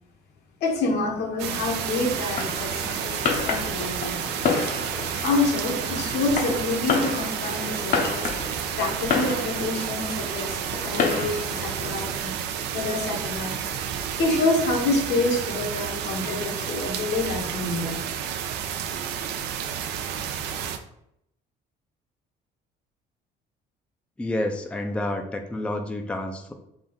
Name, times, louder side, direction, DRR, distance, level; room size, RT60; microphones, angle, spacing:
voice 1, 0.6-4.3 5.2-8.2 8.8-12.4 12.7-13.6 14.2-18.0, left 2 dB, 75° left, 1 dB, 1.0 m, -27 dB
sound 1, 1.4-20.8, right 8 dB, 80° right, 0.4 m, -31 dB
Fireworks, 2.2-12.2, left 5 dB, 55° left, 0.7 m, -30 dB
voice 2, 24.2-26.5, left 1 dB, 5° left, 4 dB, 0.4 m, -29 dB
3.7 x 2.4 x 3.8 m, 0.76 s
cardioid pair, 110°, 17 cm